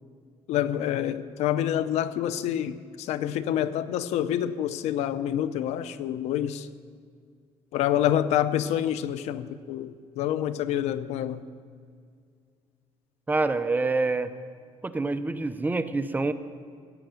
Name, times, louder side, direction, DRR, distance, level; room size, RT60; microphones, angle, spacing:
voice 1, 0.5-6.7 7.7-11.4, left 11 dB, 80° left, 14 dB, 0.7 m, -27 dB
voice 2, 13.3-14.3 14.8-16.3, right 3 dB, 15° right, 10 dB, 0.8 m, -26 dB
16.5 x 9.0 x 9.0 m, 2.1 s
cardioid pair, 115°, 11 cm